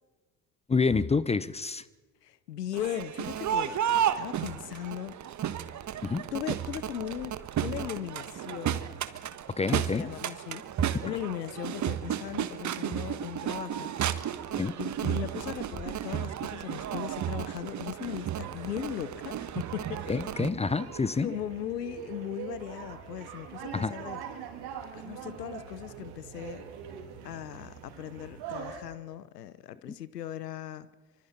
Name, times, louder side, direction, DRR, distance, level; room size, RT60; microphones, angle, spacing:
voice 1, 0.7-1.8 6.0-6.2 9.6-10.1 14.6-14.7 20.1-21.3 23.7-23.9 29.8-29.9, left 4 dB, 15° left, 0.7 m, -28 dB
voice 2, 2.2-5.2 6.3-8.8 9.7-20.0 20.6-20.7 21.1-24.2 24.9-26.6 27.2-30.9, left 11 dB, 85° left, 0.8 m, -38 dB
Crowd, 2.7-20.5, right 10 dB, 40° right, 1.3 m, -33 dB
sound 1, 18.3-28.8, right 7 dB, 55° right, 3.6 m, -43 dB
25.0 x 25.0 x 4.3 m
hypercardioid pair, 65°, 47 cm